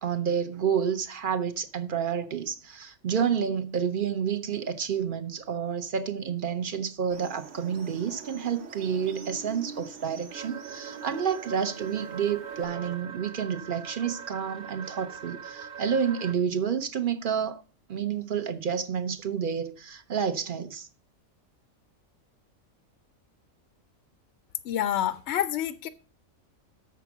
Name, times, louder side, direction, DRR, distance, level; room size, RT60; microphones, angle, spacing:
voice 1, 0.0-17.6 17.9-20.9, right 7 dB, 45° right, 0.8 m, -29 dB
sound 1, 7.1-12.7, right 5 dB, 65° right, 1.2 m, -45 dB
sound 2, 10.3-16.3, right 7 dB, 80° right, 1.5 m, -42 dB
voice 2, 24.6-25.9, left 11 dB, 65° left, 0.7 m, -28 dB
7.1 x 6.0 x 5.9 m
omnidirectional pair, 1.4 m